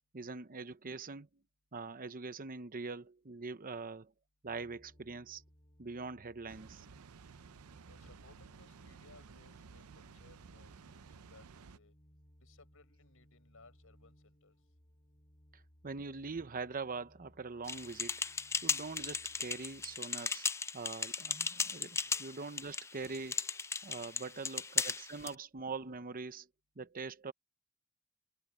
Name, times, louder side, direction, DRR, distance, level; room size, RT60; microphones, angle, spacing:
voice 1, 0.1-1.3 1.7-4.1 4.4-5.4 5.8-6.9 15.5-18.2 18.6-20.5 20.7-23.5 23.8-26.5 26.8-27.3, right 4 dB, 40° right, 0.9 m, -43 dB
sound 1, 4.4-20.0, equal, 30° left, 3.9 m, -65 dB
Water, 6.5-11.8, right 5 dB, 80° right, 0.6 m, -55 dB
voice 2, 7.9-11.9 12.4-14.6 22.0-22.3 24.3-24.7, left 3 dB, 65° left, 7.7 m, -63 dB
sound 2, 17.7-25.3, left 5 dB, 10° left, 0.4 m, -37 dB
head